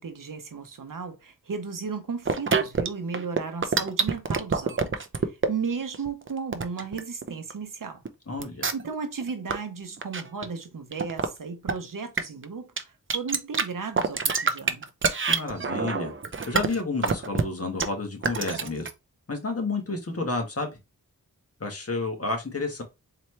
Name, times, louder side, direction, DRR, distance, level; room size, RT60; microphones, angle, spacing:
voice 1, 0.0-8.0 8.7-14.9, right 5 dB, 70° right, 0.9 m, -35 dB
sound 1, 2.2-2.9 3.1-5.5 5.9-7.5 8.0-8.1 8.4-8.9 9.2-9.6 10.0-10.5 10.9-11.3 11.7-11.8 12.2-12.4 12.8-12.9 13.1-13.6 14.0-17.4 17.8-17.9 18.2-18.9, right 5 dB, 35° right, 0.6 m, -25 dB
voice 2, 8.3-8.7 15.3-16.1 16.5-18.9 19.3-20.8 21.6-22.8, left 3 dB, 45° left, 1.4 m, -30 dB
4.2 x 2.9 x 3.2 m
wide cardioid pair, 70°, 34 cm